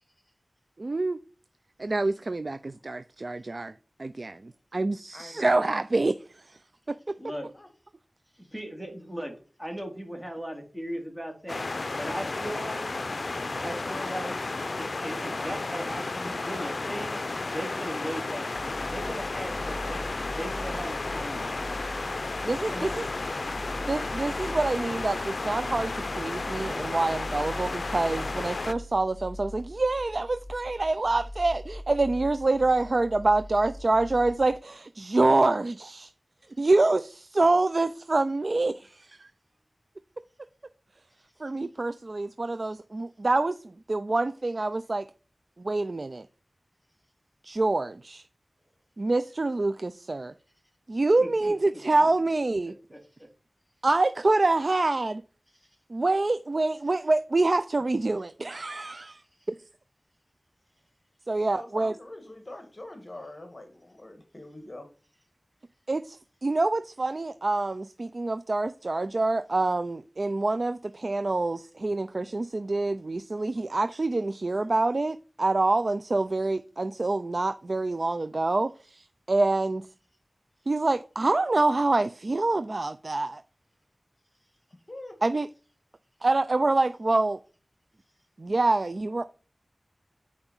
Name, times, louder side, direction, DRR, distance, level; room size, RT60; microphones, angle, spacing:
voice 1, 0.8-1.2 1.8-3.7 4.0-4.3 4.7-6.6 7.1-7.2 22.4-23.0 23.8-36.1 36.6-39.3 41.4-45.1 45.6-46.3 47.4-48.2 49.0-50.3 50.9-52.7 53.8-55.2 55.9-59.2 61.3-62.0 65.9-79.9 80.7-83.4 85.2-85.5 86.2-87.4 88.4-89.2, right 2 dB, 60° right, 0.4 m, -26 dB
voice 2, 5.1-5.7 7.5-7.7 61.4-64.9 84.9-85.2, left 1 dB, 40° left, 1.6 m, -44 dB
voice 3, 7.2-7.5 8.3-9.3 9.6-11.7 12.0-12.9 13.5-14.3 14.8-17.2 17.5-20.0 20.4-21.8 22.7-23.1 51.2-51.5 52.0-52.1 52.6-53.3 55.5-55.7, equal, 5° right, 3.1 m, -38 dB
sound 1, 11.5-28.7, left 3 dB, 70° left, 0.5 m, -33 dB
sound 2, 18.5-34.5, left 1 dB, 20° left, 3.2 m, -42 dB
8.9 x 4.8 x 5.6 m
cardioid pair, 40°, 0 cm